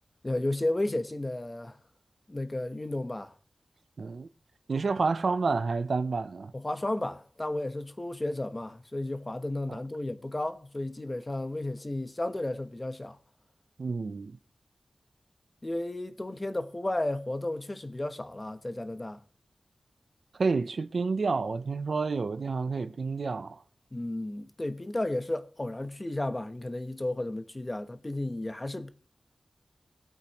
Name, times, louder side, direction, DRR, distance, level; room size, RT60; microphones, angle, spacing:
voice 1, 0.2-1.8 2.3-3.3 6.5-13.2 15.6-19.2 23.9-28.9, left 1 dB, 25° left, 1.0 m, -33 dB
voice 2, 4.0-4.3 4.7-6.5 9.7-9.8 13.8-14.4 20.4-23.6, right 4 dB, 70° right, 0.6 m, -29 dB
22.0 x 8.4 x 3.0 m
wide cardioid pair, 110°, 0 cm